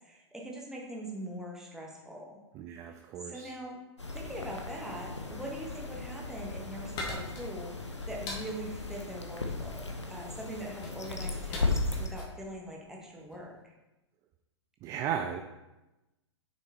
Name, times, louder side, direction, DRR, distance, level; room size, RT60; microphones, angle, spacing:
voice 1, 0.0-2.4 2.9-3.0 3.2-3.8 4.1-13.7, right 1 dB, 5° right, -2 dB, 1.5 m, -42 dB
voice 2, 2.5-3.5 14.8-15.4, right 8 dB, 20° right, 5 dB, 0.4 m, -35 dB
sound 1, 4.0-12.1, left 3 dB, 80° left, 1.2 m, -36 dB
sound 2, 6.9-13.5, left 2 dB, 30° left, 2.0 m, -44 dB
7.3 x 6.2 x 4.3 m, 1.0 s
figure-of-eight pair, 110°, 15 cm